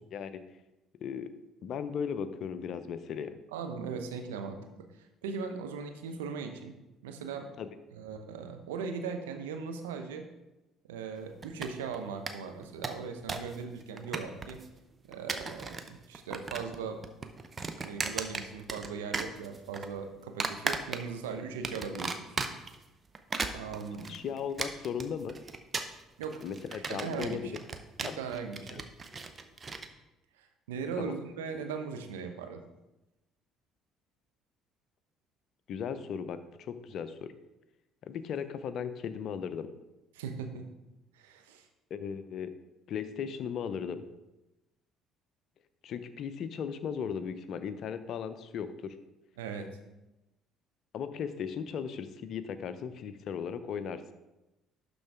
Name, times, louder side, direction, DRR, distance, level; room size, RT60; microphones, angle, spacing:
voice 1, 0.1-0.4 1.0-1.3 1.6-3.3 7.6-7.7 24.1-25.4 26.4-27.4 28.0-28.1 28.7-28.8 31.0-31.1 35.7-37.3 38.0-39.7 41.9-42.5 42.9-44.0 45.8-49.0 50.9-54.0, left 7 dB, 60° left, 12 dB, 0.5 m, -37 dB
voice 2, 3.5-4.9 5.2-6.8 7.0-7.5 7.9-10.3 10.8-14.6 15.0-17.0 17.7-22.3 23.5-24.1 26.2-26.4 26.7-27.5 28.0-28.8 30.4-32.6 40.1-40.7 41.1-41.7 49.4-49.8, right 5 dB, 85° right, 6 dB, 0.7 m, -39 dB
sound 1, 11.4-12.0 12.3-12.4 12.6-13.5 13.8-14.6 15.1-15.9 16.1-16.8 17.0-18.9 19.1-19.9 20.4-21.2 21.6-22.7 23.1-29.9, right 4 dB, 35° right, 0.7 m, -36 dB
11.5 x 3.9 x 3.5 m, 0.99 s
hypercardioid pair, 55°, 0 cm